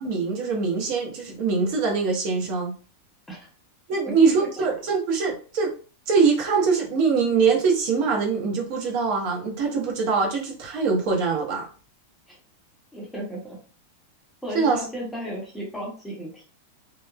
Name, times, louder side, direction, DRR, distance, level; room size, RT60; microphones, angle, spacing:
voice 1, 0.0-2.7 3.9-5.7 6.1-11.7 14.5-14.8, right 5 dB, 50° right, 1 dB, 0.7 m, -23 dB
voice 2, 12.9-13.6 14.4-16.4, equal, 5° left, -4 dB, 0.8 m, -34 dB
2.9 x 2.0 x 2.3 m, 0.38 s
supercardioid pair, 155°, 0 cm